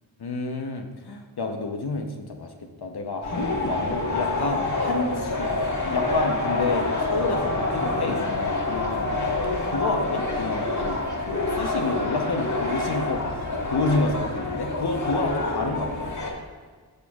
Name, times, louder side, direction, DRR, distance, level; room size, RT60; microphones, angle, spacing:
voice 1, 0.2-2.5 2.8-9.2 9.7-11.0 11.3-16.1, left 3 dB, 65° left, 3 dB, 0.9 m, -29 dB
sound 1, 3.2-16.3, left 2 dB, 45° left, 1.9 m, -27 dB
11.5 x 6.8 x 2.4 m, 1.5 s
cardioid pair, 40°, 42 cm